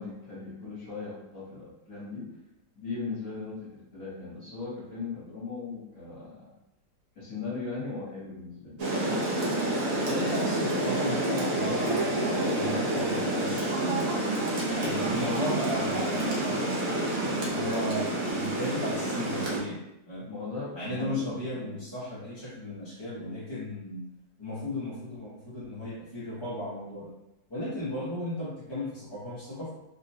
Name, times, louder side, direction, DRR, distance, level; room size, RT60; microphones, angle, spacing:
voice 1, 0.0-2.3 2.8-6.5 7.1-9.2 20.3-21.2, left 4 dB, 55° left, -7 dB, 1.3 m, -38 dB
Rain, 8.8-19.6, right 1 dB, 60° right, 0.9 m, -28 dB
voice 2, 10.1-14.1 14.8-19.8 20.1-20.3 20.7-24.0 24.4-27.1 27.5-29.7, left 1 dB, 30° left, -11 dB, 0.5 m, -35 dB
3.6 x 2.1 x 2.7 m, 0.87 s
omnidirectional pair, 1.9 m